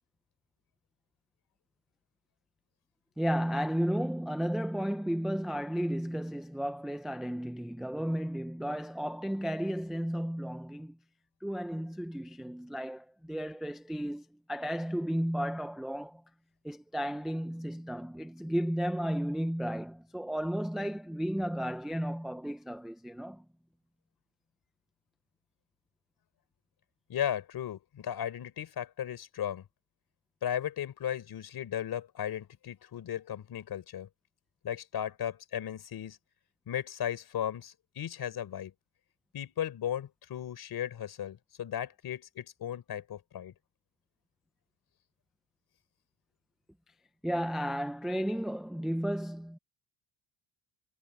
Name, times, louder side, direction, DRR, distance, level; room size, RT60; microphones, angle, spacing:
voice 1, 3.2-11.0 11.4-16.2 16.6-23.4 47.2-49.6, equal, ahead, 0.5 m, -33 dB
voice 2, 27.1-29.6 30.4-34.1 34.6-36.2 36.7-38.7 39.3-43.5, left 10 dB, 50° left, 4.2 m, -36 dB
cardioid pair, 170°, 49 cm